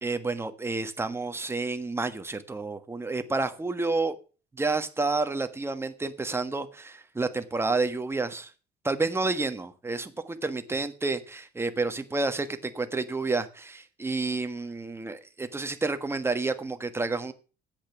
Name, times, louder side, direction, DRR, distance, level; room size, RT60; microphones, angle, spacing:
voice 1, 0.0-4.1 4.5-8.5 8.8-17.3, right 3 dB, 15° right, 1.4 m, -30 dB
10.0 x 8.3 x 7.0 m
cardioid pair, 110°, 17 cm